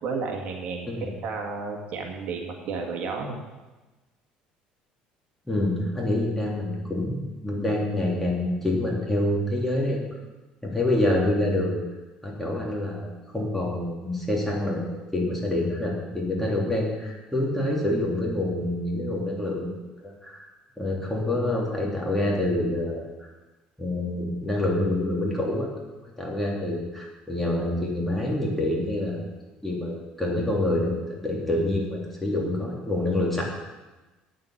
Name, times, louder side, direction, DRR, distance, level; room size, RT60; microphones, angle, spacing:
voice 1, 0.0-3.4, right 4 dB, 60° right, 2 dB, 1.9 m, -32 dB
voice 2, 5.5-10.0 10.6-11.8 12.2-14.8 15.1-19.7 20.0-20.5 20.8-23.1 23.8-25.7 26.2-29.2 29.6-31.0 31.2-33.4, left 1 dB, 5° left, -3 dB, 3.1 m, -26 dB
9.2 x 7.4 x 8.6 m, 1.1 s
cardioid pair, 115°, 3 cm